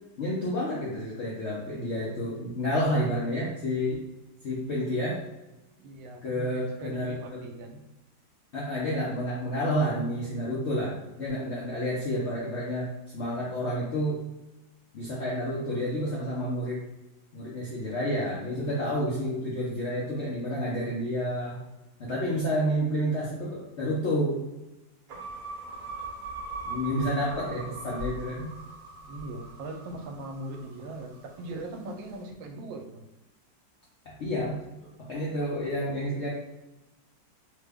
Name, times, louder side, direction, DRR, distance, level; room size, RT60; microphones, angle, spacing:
voice 1, 0.2-4.1 4.4-5.2 6.2-7.4 8.5-14.2 14.9-16.8 17.3-21.6 22.0-24.4 26.6-28.5 34.0-36.3, equal, 70° left, -6 dB, 0.6 m, -30 dB
voice 2, 5.8-7.9 18.5-18.8 27.0-27.5 29.0-33.1, right 2 dB, 85° right, 4 dB, 1.3 m, -40 dB
sound 1, 25.1-31.5, right 2 dB, 60° right, 0.9 m, -40 dB
3.1 x 2.2 x 3.4 m, 1.0 s
omnidirectional pair, 2.0 m